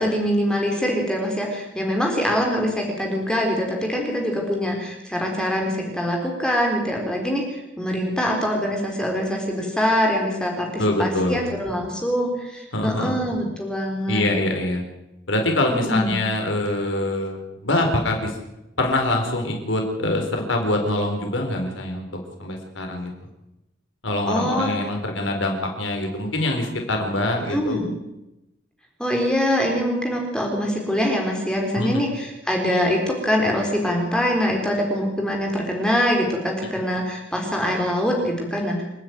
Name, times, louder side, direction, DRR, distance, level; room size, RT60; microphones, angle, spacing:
voice 1, 0.0-14.4 15.7-16.2 24.3-24.7 27.4-27.9 29.0-38.8, equal, 5° left, 0 dB, 4.0 m, -24 dB
voice 2, 10.8-11.5 12.7-13.1 14.1-14.8 15.3-18.3 18.8-22.1 22.4-23.1 24.0-27.8 31.8-32.0, left 1 dB, 90° left, 3 dB, 4.5 m, -24 dB
28.0 x 10.0 x 9.5 m, 0.93 s
head